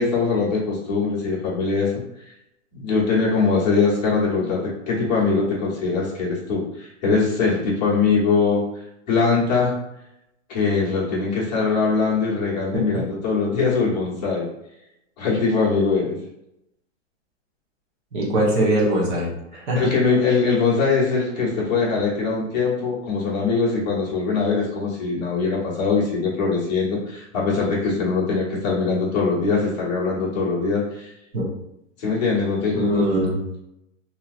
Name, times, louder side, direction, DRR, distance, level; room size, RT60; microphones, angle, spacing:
voice 1, 0.0-1.9 2.7-8.6 9.1-9.7 10.5-14.5 15.2-16.2 19.8-31.1 32.0-33.0, left 4 dB, 35° left, -5 dB, 1.0 m, -22 dB
voice 2, 18.1-19.9 31.3-31.5 32.7-33.4, right 1 dB, 35° right, -5 dB, 1.0 m, -22 dB
2.9 x 2.7 x 2.4 m, 0.82 s
hypercardioid pair, 175°, 38 cm